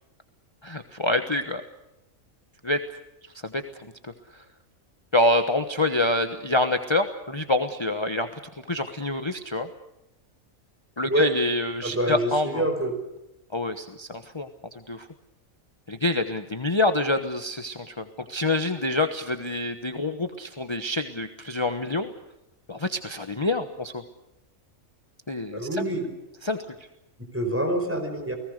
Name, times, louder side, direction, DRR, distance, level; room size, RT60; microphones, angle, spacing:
voice 1, 0.6-1.6 2.6-2.8 3.4-3.6 4.0-4.4 5.1-8.4 8.7-9.7 11.0-12.6 13.5-15.1 15.9-22.1 22.7-24.0 25.3-25.8 26.4-26.6, left 2 dB, 20° left, 8 dB, 1.1 m, -26 dB
voice 2, 11.8-12.9 25.5-26.1 27.3-28.4, right 1 dB, 10° right, 4 dB, 5.0 m, -26 dB
30.0 x 19.0 x 6.6 m, 0.89 s
omnidirectional pair, 1.4 m